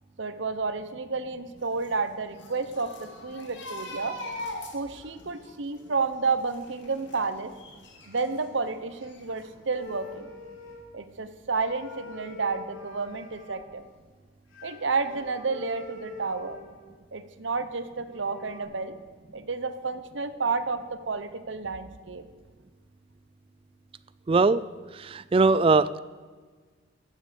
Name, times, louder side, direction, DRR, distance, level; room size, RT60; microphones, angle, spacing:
voice 1, 0.2-4.2 4.7-7.5 8.1-10.3 10.9-13.8 14.6-16.6 17.1-19.0 19.3-22.2, right 4 dB, 65° right, 11 dB, 0.9 m, -31 dB
sound 1, 1.6-8.5 8.9-9.8 10.0-10.2, left 1 dB, 60° left, 2.1 m, -42 dB
sound 2, 9.8-11.1 11.5-13.6 14.5-17.0 17.7-17.8 17.9-18.6, left 3 dB, 80° left, 3.6 m, -45 dB
voice 2, 24.3-24.6 25.0-26.0, right 3 dB, 25° right, 17 dB, 0.3 m, -21 dB
14.0 x 11.5 x 5.1 m, 1.5 s
head